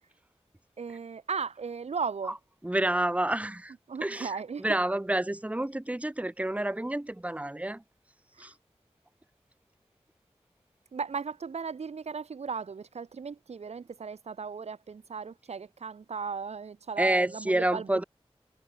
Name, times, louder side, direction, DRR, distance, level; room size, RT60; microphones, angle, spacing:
voice 1, 0.8-2.3 3.9-4.7 8.4-8.5 10.9-18.0, right 5 dB, 75° right, 0.5 m, -36 dB
voice 2, 2.6-3.7 4.0-7.8 8.4-8.5 17.0-18.0, right 1 dB, 10° right, 0.6 m, -29 dB
wide cardioid pair, 50°, 11 cm